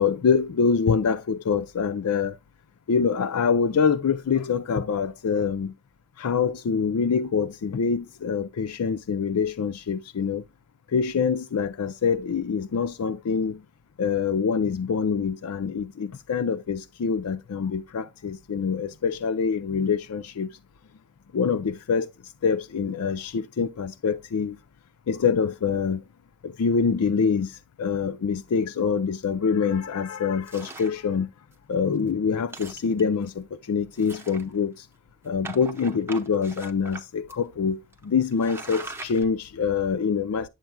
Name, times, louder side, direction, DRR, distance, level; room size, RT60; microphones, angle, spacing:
voice 1, 0.0-2.4 2.9-5.7 6.2-10.4 10.9-13.6 14.0-20.6 21.3-22.1 22.4-24.6 25.1-26.0 26.4-31.3 31.7-34.9 35.2-40.5, left 6 dB, 90° left, 0.4 m, -25 dB
sound 1, 30.5-31.0 31.5-31.6 32.0-32.1 32.4-33.3 33.9-34.8 35.4-37.0 37.3-37.4 37.9-38.1 38.3-39.2, right 3 dB, 10° right, 0.8 m, -40 dB
9.0 x 7.3 x 2.2 m
head